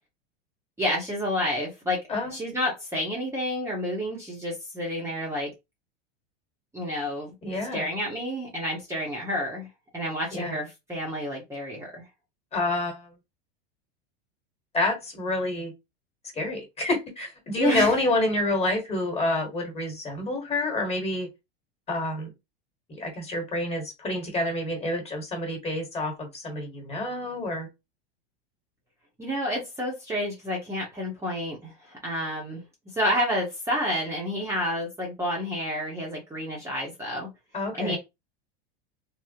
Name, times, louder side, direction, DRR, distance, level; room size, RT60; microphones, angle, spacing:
voice 1, 0.8-2.0 2.3-5.5 6.7-7.3 7.7-9.7 9.9-12.0 17.6-18.0 29.2-32.6 32.9-37.3 37.8-38.0, equal, 10° right, -3 dB, 0.9 m, -29 dB
voice 2, 7.4-7.9 10.3-10.5 12.5-13.1 14.7-15.7 16.3-21.3 21.9-22.3 22.9-27.7 37.5-38.0, left 2 dB, 20° left, 2 dB, 1.4 m, -28 dB
3.6 x 2.0 x 2.7 m, 0.23 s
supercardioid pair, 115°, 30 cm